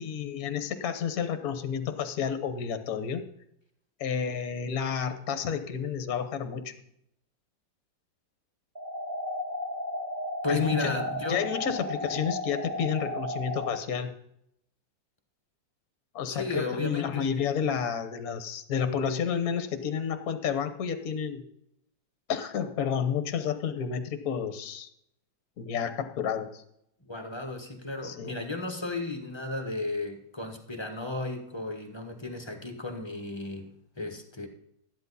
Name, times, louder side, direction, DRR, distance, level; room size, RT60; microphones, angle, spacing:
voice 1, 0.0-3.2 4.0-6.7 10.5-11.0 11.3-14.1 16.1-21.4 22.3-24.9 25.6-26.6 28.0-28.4, left 7 dB, 55° left, 9 dB, 1.3 m, -30 dB
sound 1, 8.7-13.8, left 1 dB, 10° right, 1.7 m, -34 dB
voice 2, 10.4-11.4 16.3-17.3 27.1-34.5, left 2 dB, 15° left, 3 dB, 1.1 m, -34 dB
13.0 x 10.5 x 4.1 m, 0.76 s
omnidirectional pair, 2.1 m